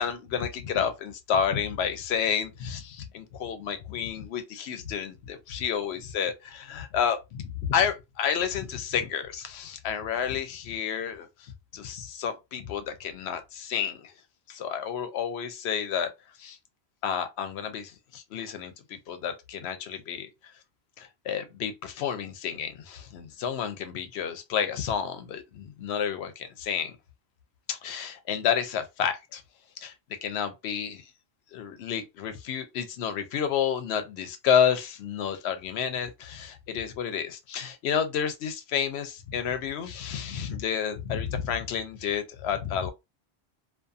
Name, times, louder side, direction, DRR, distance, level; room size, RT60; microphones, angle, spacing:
voice 1, 0.0-14.1 14.5-16.1 16.4-16.6 17.0-20.3 21.0-27.0 27.7-29.4 29.8-29.9 30.2-31.1 31.5-42.9, left 8 dB, 85° left, 0.8 m, -30 dB
2.4 x 2.4 x 2.5 m
omnidirectional pair, 1.1 m